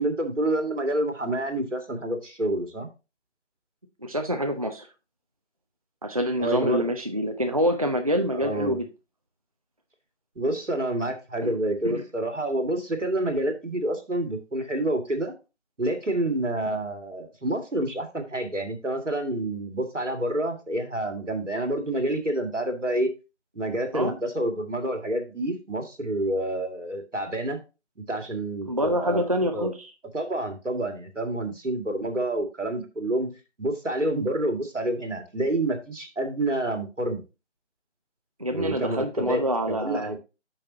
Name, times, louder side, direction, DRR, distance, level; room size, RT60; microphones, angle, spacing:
voice 1, 0.0-2.9 6.4-6.9 8.3-8.8 10.4-15.3 15.8-23.1 23.6-27.6 28.1-29.3 29.5-29.7 30.1-33.3 33.6-37.2 38.5-39.4 39.7-40.2, right 1 dB, 85° right, 5 dB, 2.2 m, -28 dB
voice 2, 4.0-4.9 6.0-8.9 11.4-11.6 11.8-12.0 23.9-24.2 28.7-29.9 38.4-40.1, equal, 30° right, 6 dB, 0.5 m, -26 dB
8.7 x 6.4 x 2.7 m, 0.29 s
figure-of-eight pair, 160°, 36 cm